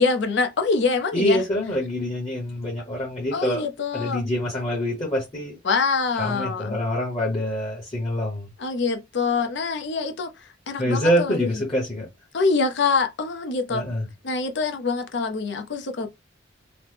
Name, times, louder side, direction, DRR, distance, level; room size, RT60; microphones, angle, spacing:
voice 1, 0.0-1.4 3.3-4.3 5.6-6.8 8.6-11.6 12.3-13.9 14.2-16.1, left 4 dB, 65° left, 0.6 m, -25 dB
voice 2, 1.1-3.7 3.9-5.5 6.2-8.5 10.8-12.1 13.7-14.0, equal, 30° left, 1.0 m, -25 dB
3.0 x 2.0 x 3.3 m
head